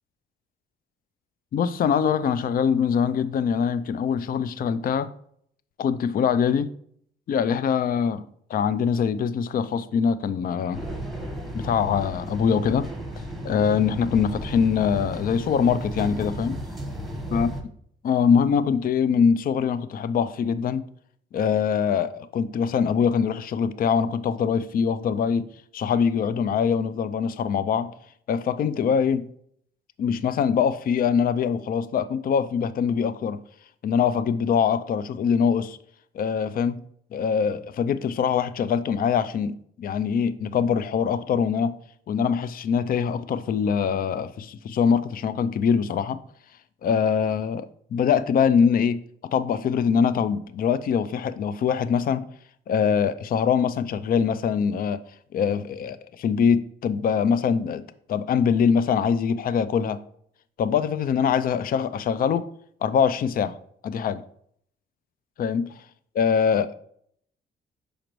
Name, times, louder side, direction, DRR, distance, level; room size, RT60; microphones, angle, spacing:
voice 1, 1.5-5.1 5.8-6.7 7.3-8.2 8.5-10.8 11.5-12.9 13.4-16.6 17.3-17.5 18.0-20.8 21.3-25.5 25.7-27.9 28.3-29.3 30.0-33.4 33.8-35.8 36.1-36.8 37.1-41.8 42.1-46.2 46.8-49.0 49.3-52.2 52.7-55.0 55.3-60.0 60.6-62.4 62.8-63.6 63.8-64.2 65.4-65.7 66.2-66.7, left 7 dB, 50° left, 0.4 m, -23 dB
sound 1, 10.7-17.6, right 1 dB, ahead, 1.1 m, -34 dB
6.4 x 5.1 x 3.0 m
cardioid pair, 90°, 20 cm